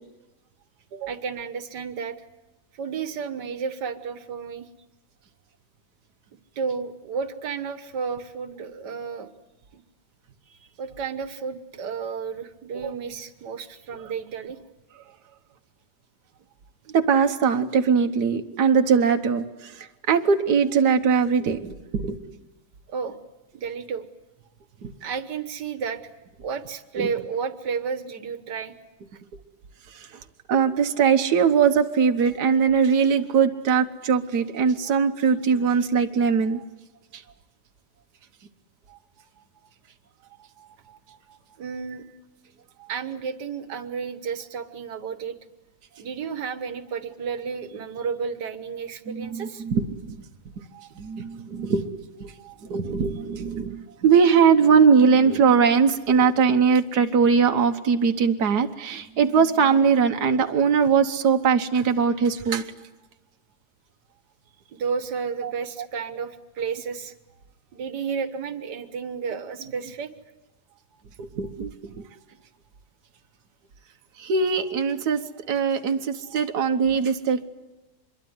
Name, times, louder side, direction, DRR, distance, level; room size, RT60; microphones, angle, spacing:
voice 1, 1.1-2.2 2.7-4.7 6.6-9.3 9.7-9.8 10.5-14.6 22.9-23.2 23.5-24.0 25.0-26.1 26.4-28.7 29.1-29.2 41.6-42.1 42.9-45.4 46.0-49.6 64.7-67.1 67.7-70.1, right 6 dB, 90° right, 11 dB, 1.9 m, -32 dB
voice 2, 16.9-22.2 24.8-24.9 27.0-27.1 29.9-30.2 30.5-36.6 37.1-37.2 38.9-39.0 40.6-41.2 42.8-42.9 49.1-50.2 50.7-51.9 52.2-62.7 65.4-65.5 71.2-72.1 74.2-77.4, right 6 dB, 75° right, 5 dB, 1.7 m, -21 dB
25.5 x 22.5 x 9.6 m, 1.1 s
omnidirectional pair, 1.8 m